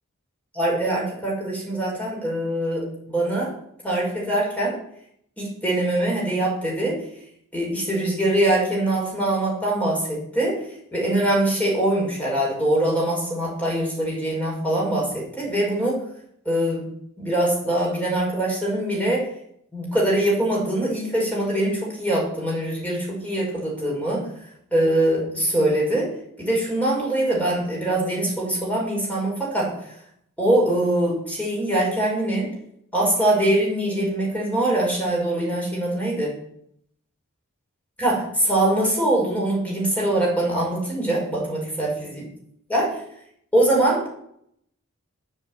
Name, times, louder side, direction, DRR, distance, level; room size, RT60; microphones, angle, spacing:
voice 1, 0.5-3.5 3.8-4.8 5.4-7.0 7.5-16.0 16.5-16.8 17.2-19.3 19.7-24.3 24.7-26.1 26.4-29.7 30.4-32.5 32.9-36.3 38.0-42.2 42.7-43.0 43.5-44.1, right 1 dB, 5° left, -4 dB, 5.4 m, -23 dB
9.0 x 8.5 x 8.8 m, 0.71 s
head